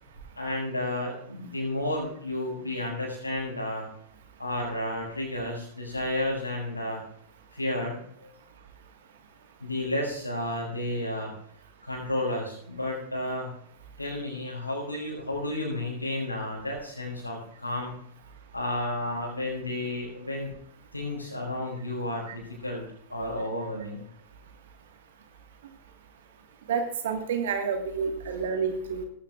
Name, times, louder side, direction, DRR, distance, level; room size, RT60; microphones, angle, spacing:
voice 1, 0.3-3.9 4.4-7.0 7.5-8.3 9.6-11.3 11.8-13.5 14.0-17.9 18.5-20.5 20.9-22.8 23.1-24.0, left 1 dB, 85° left, -6 dB, 5.1 m, -32 dB
voice 2, 26.7-29.0, right 6 dB, 60° right, 5 dB, 1.7 m, -29 dB
18.5 x 15.5 x 2.5 m, 0.66 s
figure-of-eight pair, 90°, 0 cm